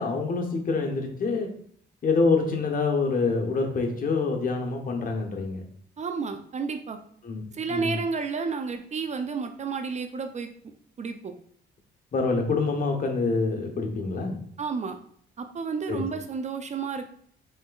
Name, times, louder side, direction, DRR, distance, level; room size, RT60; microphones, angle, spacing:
voice 1, 0.0-1.5 2.0-5.6 7.2-7.4 7.7-8.0 12.1-14.4 15.9-16.0, left 4 dB, 45° left, 2 dB, 0.9 m, -26 dB
voice 2, 6.0-7.0 7.5-10.5 11.0-11.3 14.6-15.0 15.4-17.1, right 5 dB, 35° right, 6 dB, 0.4 m, -31 dB
4.4 x 3.3 x 2.3 m, 0.62 s
cardioid pair, 90°, 20 cm